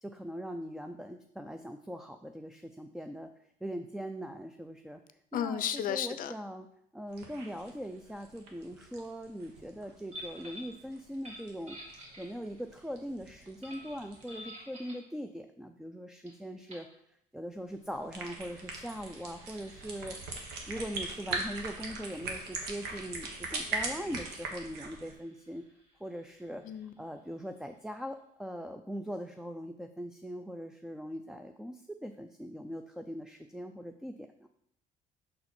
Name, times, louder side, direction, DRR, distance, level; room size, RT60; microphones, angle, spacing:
voice 1, 0.0-3.3 3.6-5.0 5.3-6.7 6.9-11.8 12.2-16.9 17.3-20.2 20.7-25.6 26.0-34.5, equal, 5° right, 6 dB, 0.3 m, -41 dB
voice 2, 5.3-6.3 26.6-26.9, left 9 dB, 55° left, 12 dB, 0.5 m, -33 dB
sound 1, 7.1-14.4 17.8-25.1, right 3 dB, 85° right, 1.2 m, -41 dB
sound 2, 10.1-10.8 11.1-12.7 13.6-15.1 16.2-16.3 16.6-16.9 18.0-27.3, equal, 40° right, 2.6 m, -52 dB
6.4 x 4.3 x 4.3 m, 0.72 s
cardioid pair, 110°, 17 cm